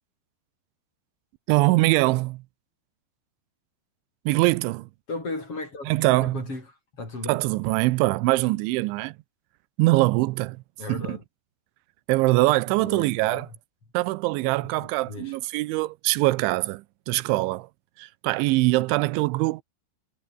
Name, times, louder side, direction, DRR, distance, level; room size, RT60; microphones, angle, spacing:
voice 1, 1.5-2.4 4.3-4.9 5.9-6.4 7.3-9.2 9.8-10.6 10.9-11.2 12.1-13.5 13.9-17.7 18.0-19.6, right 20 dB, 90° right, 3.1 m, -23 dB
voice 2, 5.1-6.7 6.9-7.3 10.8-11.2 12.8-13.6 14.8-15.4, left 3 dB, 30° left, 7.3 m, -36 dB
omnidirectional pair, 5.3 m